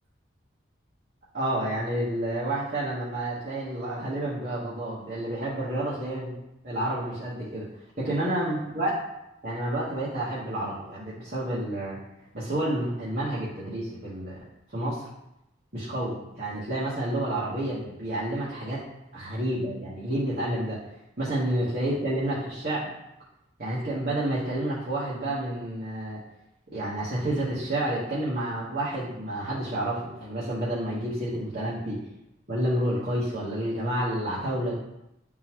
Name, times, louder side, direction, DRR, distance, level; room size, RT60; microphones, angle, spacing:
voice 1, 1.3-6.4 6.6-7.7 8.0-9.0 9.4-12.0 12.3-14.4 14.7-15.0 15.7-18.8 19.1-20.8 21.2-22.9 23.6-26.2 26.7-32.0 32.5-34.8, right 1 dB, 50° right, -8 dB, 1.4 m, -29 dB
10.5 x 3.9 x 3.1 m, 0.89 s
head